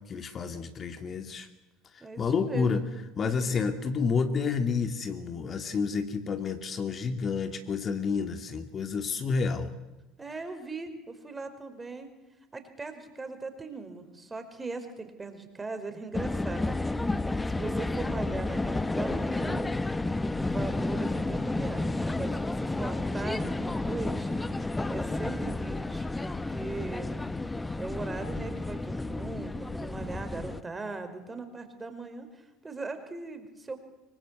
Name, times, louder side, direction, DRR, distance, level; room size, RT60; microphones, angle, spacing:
voice 1, 0.1-1.5 2.2-2.8 3.2-9.7, left 5 dB, 35° left, 7 dB, 2.3 m, -29 dB
voice 2, 2.0-2.9 10.2-12.1 12.5-16.9 17.5-19.7 20.4-24.3 24.9-27.1 27.8-33.8, right 3 dB, 20° right, 8 dB, 5.2 m, -39 dB
sound 1, 16.1-30.6, left 2 dB, 10° left, 1.2 m, -31 dB
25.0 x 24.0 x 8.5 m, 1.1 s
figure-of-eight pair, 65°, 0 cm